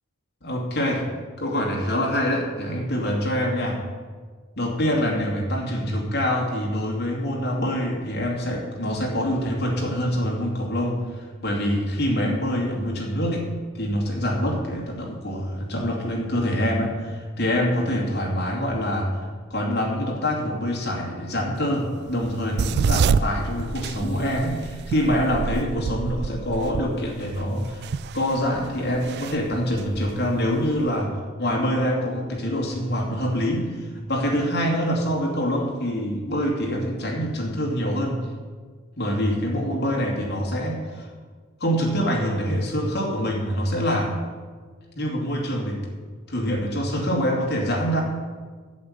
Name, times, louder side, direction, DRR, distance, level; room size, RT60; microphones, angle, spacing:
voice 1, 0.4-1.1 1.4-3.8 4.6-13.5 13.7-19.2 19.5-27.8 28.1-38.2 39.0-41.1 41.6-44.1 45.0-45.8 46.3-48.0, equal, 50° left, -1 dB, 2.4 m, -25 dB
sound 1, 22.1-30.9, right 5 dB, 50° right, 0.3 m, -28 dB
8.3 x 8.1 x 8.9 m, 1.5 s
head